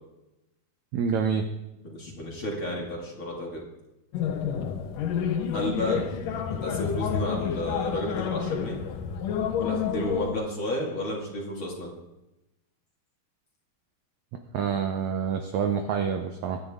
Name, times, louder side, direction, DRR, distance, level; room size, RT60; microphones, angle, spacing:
voice 1, 0.9-1.5 14.5-16.6, right 6 dB, 85° right, 5 dB, 1.6 m, -27 dB
voice 2, 1.8-3.6 5.5-6.1 6.6-8.8 9.6-11.9, left 1 dB, 35° left, -2 dB, 2.6 m, -32 dB
sound 1, 4.1-10.3, left 7 dB, 70° left, 2.3 m, -29 dB
24.0 x 9.7 x 3.7 m, 0.96 s
omnidirectional pair, 4.5 m